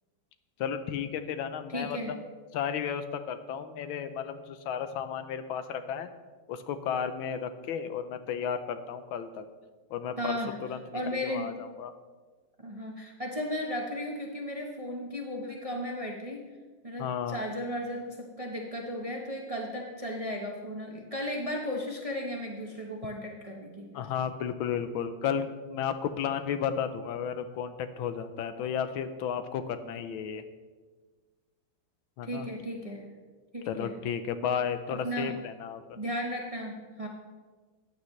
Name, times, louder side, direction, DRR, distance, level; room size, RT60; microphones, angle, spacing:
voice 1, 0.6-2.2 2.5-6.1 6.5-9.4 9.9-11.9 17.0-17.4 23.9-30.4 32.2-32.5 33.7-35.8, left 8 dB, 90° left, 10 dB, 1.5 m, -33 dB
voice 2, 1.7-2.1 10.2-10.6 10.9-11.6 12.6-16.4 16.8-23.9 32.2-33.0 33.5-33.9 34.9-35.3 36.0-37.1, equal, 25° right, 0 dB, 0.8 m, -35 dB
14.5 x 9.5 x 3.2 m, 1.4 s
omnidirectional pair, 2.2 m